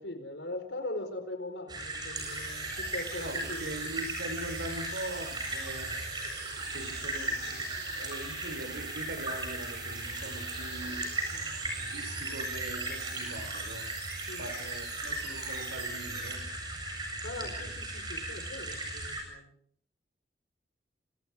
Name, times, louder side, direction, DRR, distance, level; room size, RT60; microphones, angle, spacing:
voice 1, 0.0-3.8 11.3-11.5 14.3-14.5 17.2-19.5, left 2 dB, 85° left, 4.6 m, -41 dB
sound 1, 1.7-19.2, right 1 dB, 25° right, 7.8 m, -37 dB
sound 2, 2.1-16.4, right 7 dB, 70° right, 6.5 m, -45 dB
voice 2, 3.2-6.2 6.7-11.4 11.7-13.9 14.4-16.5 17.4-17.5, right 1 dB, 85° right, 4.1 m, -42 dB
27.0 x 27.0 x 4.9 m
head